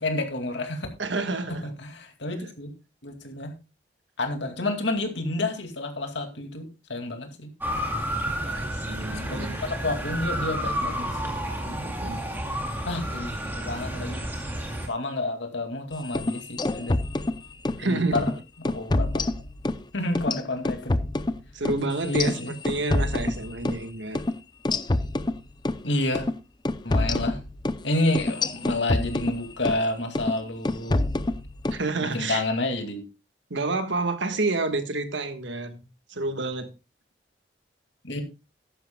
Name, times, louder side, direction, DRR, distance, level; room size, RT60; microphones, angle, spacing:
voice 1, 0.0-0.9 1.5-2.7 3.0-3.5 4.2-7.5 9.1-11.4 11.7-11.9 12.9-14.2 14.9-17.0 17.8-18.3 18.6-19.1 19.9-21.0 22.0-22.6 25.8-26.3 26.8-27.4 27.8-31.0 32.0-33.0 38.0-38.2, left 2 dB, 75° left, 2.4 m, -29 dB
voice 2, 1.0-1.6 2.4-2.5 8.1-9.6 11.8-12.2 17.8-18.3 21.5-22.4 22.6-24.2 31.7-32.4 33.5-35.8 36.1-36.7, right 3 dB, 80° right, 1.5 m, -29 dB
Motor vehicle (road) / Siren, 7.6-14.9, equal, 10° right, 2.2 m, -31 dB
sound 1, 16.0-17.8 18.2-18.3 18.7-19.8 20.2-23.8 24.2-24.3 24.7-25.8 26.2-26.3 26.7-29.8 30.2-30.4 30.7-31.8, left 2 dB, 25° left, 0.5 m, -27 dB
14.5 x 11.5 x 2.3 m
head